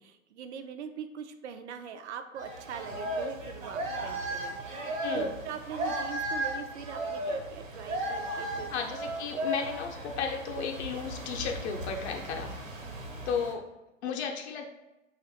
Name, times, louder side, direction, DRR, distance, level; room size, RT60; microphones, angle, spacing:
voice 1, 0.0-8.7 12.8-13.2, right 7 dB, 60° right, 8 dB, 0.5 m, -42 dB
sound 1, 2.3-13.5, right 1 dB, 80° right, 1.2 m, -35 dB
voice 2, 5.0-5.3 8.7-12.5 13.3-13.7 14.0-14.7, left 6 dB, 55° left, 2 dB, 0.7 m, -34 dB
3.0 x 2.5 x 4.2 m, 0.98 s
hypercardioid pair, 110°, 39 cm